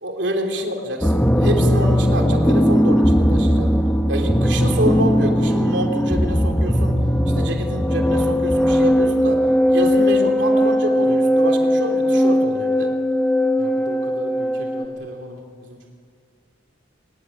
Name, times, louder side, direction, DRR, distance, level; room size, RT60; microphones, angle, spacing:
voice 1, 0.0-3.7 4.1-7.0 7.3-9.4 9.7-12.9, right 1 dB, 70° right, 4 dB, 3.3 m, -27 dB
sound 1, 1.0-14.8, equal, 5° left, 1.1 m, -18 dB
voice 2, 13.6-15.9, equal, 90° right, 1 dB, 2.7 m, -38 dB
23.5 x 19.0 x 9.8 m, 2.2 s
head